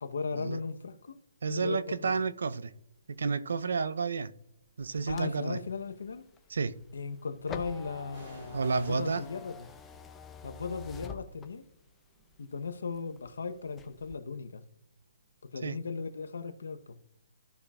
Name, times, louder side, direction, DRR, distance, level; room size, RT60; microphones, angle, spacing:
voice 1, 0.0-1.2 1.5-2.2 5.1-6.2 6.9-9.7 10.4-11.6 12.4-14.6 15.4-17.0, left 4 dB, 80° left, 0.9 m, -37 dB
voice 2, 1.4-2.7 3.2-4.3 4.8-5.6 6.5-6.7 8.5-9.2 15.6-15.8, right 5 dB, 75° right, 0.6 m, -30 dB
sound 1, 4.4-5.2 8.1-15.7 16.0-16.1, right 2 dB, 45° right, 3.5 m, -57 dB
sound 2, 4.8-11.9 12.3-13.3 13.7-14.1, left 5 dB, 10° left, 0.6 m, -48 dB
15.0 x 5.7 x 2.4 m
hypercardioid pair, 155°, 0 cm